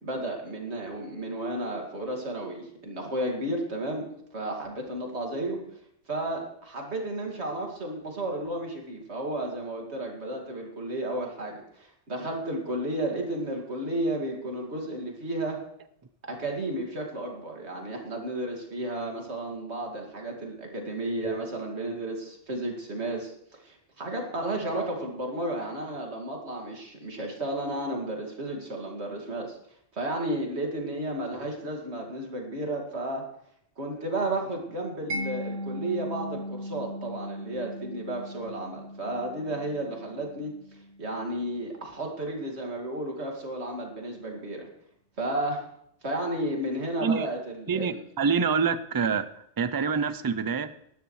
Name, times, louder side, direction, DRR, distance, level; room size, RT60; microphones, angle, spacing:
voice 1, 0.0-5.6 6.1-15.6 16.3-23.3 23.6-29.6 29.9-33.2 33.8-40.5 41.0-44.7 45.2-45.6 46.0-48.0, right 1 dB, 65° right, 1 dB, 2.6 m, -33 dB
Mallet percussion, 35.1-41.9, equal, 85° right, 1.4 m, -38 dB
voice 2, 47.7-49.3 49.6-50.9, right 6 dB, 35° right, 13 dB, 0.3 m, -26 dB
18.5 x 12.0 x 3.2 m, 0.73 s
omnidirectional pair, 1.2 m